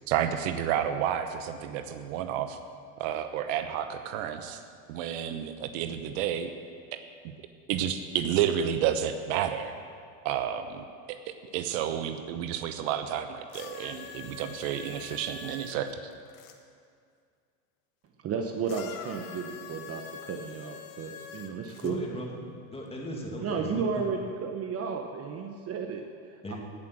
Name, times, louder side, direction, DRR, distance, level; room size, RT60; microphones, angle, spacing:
voice 1, 0.1-2.6 3.0-4.6 4.9-6.5 7.2-7.3 7.7-9.7 10.2-15.9, right 9 dB, 70° right, 9 dB, 1.0 m, -30 dB
sound 1, 13.5-16.6 18.7-21.9 22.9-23.0, left 7 dB, 85° left, 1.4 m, -45 dB
voice 2, 18.2-22.0 23.4-26.6, right 5 dB, 35° right, 3 dB, 1.0 m, -33 dB
voice 3, 21.8-22.5 22.7-24.1 26.4-26.6, equal, 15° left, -2 dB, 2.6 m, -37 dB
17.0 x 7.7 x 6.2 m, 2.3 s
supercardioid pair, 115°, 40 cm